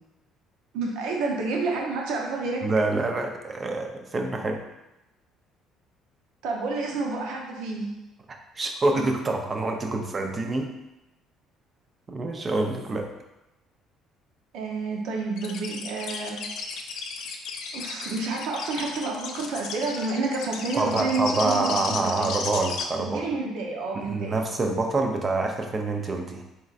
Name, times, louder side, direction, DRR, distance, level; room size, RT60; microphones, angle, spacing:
voice 1, 0.7-2.6 6.4-7.9 14.5-16.4 17.7-22.3 23.0-24.4, right 3 dB, 80° right, 0 dB, 0.7 m, -29 dB
voice 2, 2.6-4.6 8.3-10.7 12.1-13.1 20.8-23.3 23.9-26.4, right 2 dB, 30° right, 4 dB, 0.6 m, -26 dB
sound 1, 15.4-22.8, left 5 dB, 75° left, 0.4 m, -34 dB
4.2 x 3.6 x 2.5 m, 0.97 s
cardioid pair, 90°, 0 cm